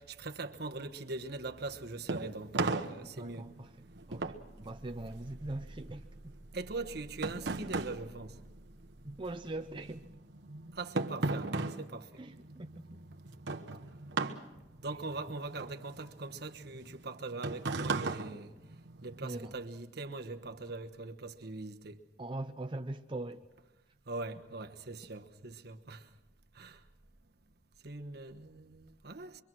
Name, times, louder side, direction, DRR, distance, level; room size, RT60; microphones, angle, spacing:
voice 1, 0.0-3.5 6.5-8.4 10.8-12.2 14.8-18.5 19.0-22.0 24.1-26.0 26.6-26.8 27.8-29.4, right 3 dB, 65° right, 1.2 m, -41 dB
sound 1, 1.6-9.2 9.5-19.2, right 3 dB, 85° right, 1.2 m, -38 dB
voice 2, 3.2-3.7 4.1-6.3 9.0-10.1 12.2-13.0 19.2-19.5 22.2-23.4, right 2 dB, 30° right, 0.7 m, -41 dB
25.0 x 24.5 x 6.2 m
head